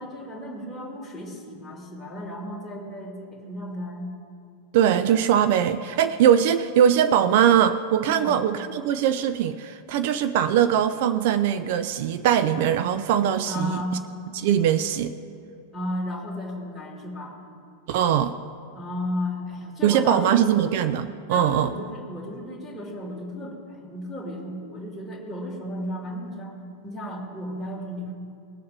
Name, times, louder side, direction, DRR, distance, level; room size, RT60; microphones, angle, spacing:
voice 1, 0.0-4.1 8.1-8.4 13.5-14.0 15.7-17.4 18.7-20.6 21.3-26.5 26.8-28.1, left 1 dB, ahead, -5 dB, 2.6 m, -34 dB
voice 2, 4.7-13.8 14.3-15.1 17.9-18.3 19.8-21.7, right 9 dB, 50° right, 10 dB, 0.4 m, -21 dB
19.5 x 7.1 x 4.7 m, 2.5 s
figure-of-eight pair, 90°, 0 cm